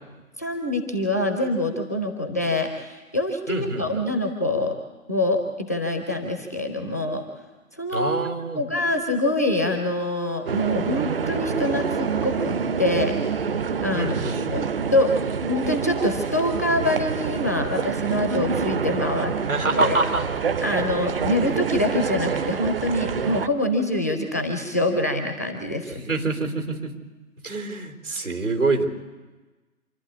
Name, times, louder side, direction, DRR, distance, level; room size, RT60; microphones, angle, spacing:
voice 1, 0.4-4.8 5.1-7.2 7.8-8.2 8.5-13.2 13.8-14.1 14.5-14.7 14.9-15.1 15.5-19.3 19.7-20.0 20.6-26.0, left 1 dB, 10° left, 4 dB, 0.5 m, -25 dB
voice 2, 3.5-4.0 7.9-8.6 13.9-14.9 19.5-20.3 26.0-26.9 27.4-28.8, right 3 dB, 90° right, 3 dB, 4.2 m, -26 dB
sound 1, 10.5-23.5, right 6 dB, 40° right, 0.8 m, -27 dB
27.0 x 11.5 x 8.4 m, 1.2 s
figure-of-eight pair, 135°, 43 cm